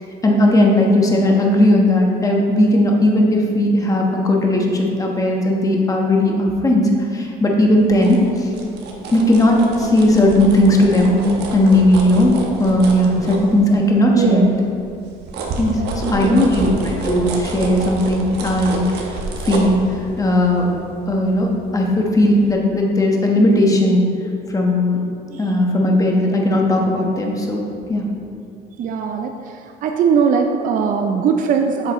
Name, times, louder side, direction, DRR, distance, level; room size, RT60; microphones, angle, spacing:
voice 1, 0.2-8.5 9.1-11.2 11.5-14.5 15.6-19.1 19.4-19.8 20.2-20.6 21.1-24.0 24.5-25.0 25.3-27.6 27.9-28.0, left 1 dB, 20° left, 0 dB, 1.2 m, -16 dB
sound 1, 7.8-14.1 14.5-22.0 22.4-22.5, right 2 dB, 75° right, 1.1 m, -29 dB
voice 2, 14.1-14.5 15.7-16.5 28.8-29.6 29.8-31.9, right 6 dB, 55° right, 4 dB, 0.5 m, -20 dB
8.0 x 7.1 x 3.0 m, 2.4 s
cardioid pair, 110°, 17 cm